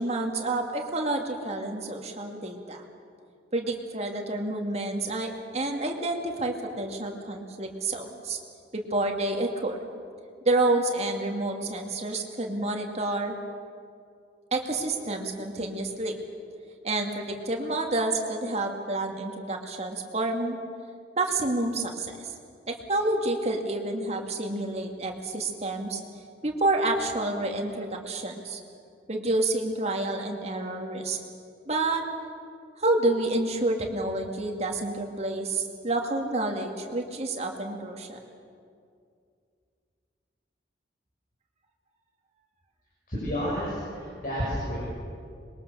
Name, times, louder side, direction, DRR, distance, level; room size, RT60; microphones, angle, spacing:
voice 1, 0.0-2.8 3.5-8.4 8.7-9.8 10.4-13.3 14.5-16.1 16.8-20.6 21.2-22.3 22.7-26.0 26.4-28.6 29.1-31.2 31.7-32.0 32.8-38.2, right 2 dB, 35° right, 3 dB, 2.4 m, -29 dB
voice 2, 43.1-44.8, equal, 50° left, -6 dB, 6.2 m, -30 dB
25.5 x 22.0 x 7.0 m, 2.4 s
head